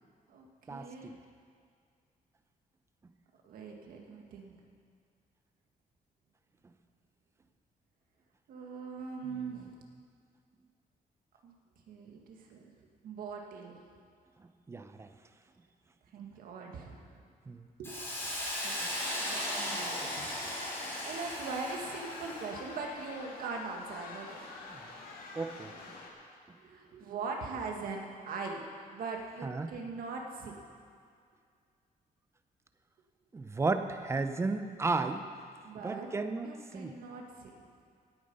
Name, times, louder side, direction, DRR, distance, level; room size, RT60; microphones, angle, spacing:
voice 1, 0.3-1.2 3.4-4.6 8.5-9.8 11.4-11.5 11.9-12.7 13.0-13.8 16.1-17.2 17.8-18.0 18.6-20.6 21.0-24.4 26.6-30.6 35.6-36.1 36.4-37.7, right 4 dB, 75° right, 1 dB, 1.9 m, -41 dB
voice 2, 14.7-15.1 17.5-17.7 24.7-24.8 25.4-25.7 29.4-29.7 33.3-35.2 35.8-36.5 36.7-36.9, right 3 dB, 20° right, 9 dB, 0.6 m, -33 dB
Hiss, 17.8-22.6, left 1 dB, 15° left, 4.2 m, -37 dB
sound 1, 19.0-26.1, left 3 dB, 90° left, 2.0 m, -46 dB
17.5 x 9.0 x 5.5 m, 2.2 s
cardioid pair, 175°, 15 cm